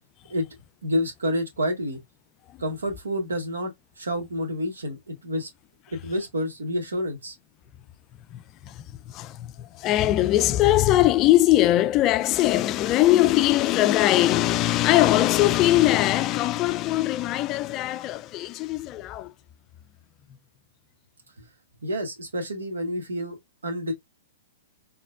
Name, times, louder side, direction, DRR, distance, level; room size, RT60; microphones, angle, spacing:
voice 1, 0.8-2.0 2.6-3.7 4.0-5.5 5.9-7.3 21.8-23.4 23.6-23.9, equal, 80° right, 1.4 m, -28 dB
voice 2, 8.3-8.7 9.1-19.3, left 15 dB, 35° left, 0.3 m, -21 dB
4.1 x 3.2 x 2.3 m
hypercardioid pair, 115°, 0 cm